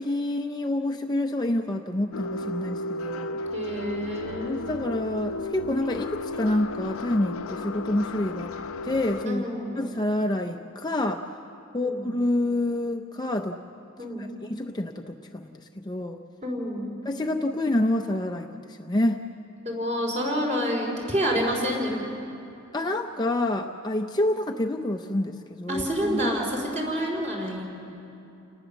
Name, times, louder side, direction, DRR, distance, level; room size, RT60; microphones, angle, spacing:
voice 1, 0.0-3.4 4.4-8.5 8.8-9.5 9.8-11.2 11.7-13.6 14.2-16.2 17.0-19.2 22.7-26.3, left 1 dB, 20° left, 4 dB, 0.6 m, -28 dB
sound 1, 2.1-9.3, left 2 dB, 75° left, 0.8 m, -34 dB
voice 2, 3.5-4.6 9.2-9.9 11.7-12.1 14.0-14.3 16.4-16.9 19.6-22.1 25.7-27.6, equal, 30° right, -1 dB, 4.6 m, -28 dB
29.5 x 19.0 x 7.1 m, 2.8 s
head